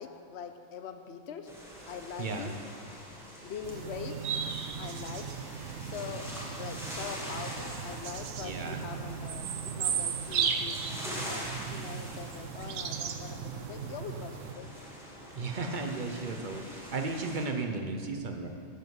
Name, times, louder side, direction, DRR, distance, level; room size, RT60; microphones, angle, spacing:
voice 1, 0.0-1.5 1.9-2.6 3.4-4.2 4.8-5.3 5.8-6.3 6.5-14.7, left 7 dB, 65° left, 8 dB, 0.9 m, -43 dB
sound 1, 1.5-17.5, equal, ahead, 1.5 m, -44 dB
sound 2, 3.6-14.5, right 7 dB, 85° right, 1.0 m, -36 dB
voice 2, 8.4-8.8 15.3-18.5, right 3 dB, 45° right, 4 dB, 0.9 m, -34 dB
11.0 x 7.5 x 4.8 m, 2.4 s
omnidirectional pair, 1.3 m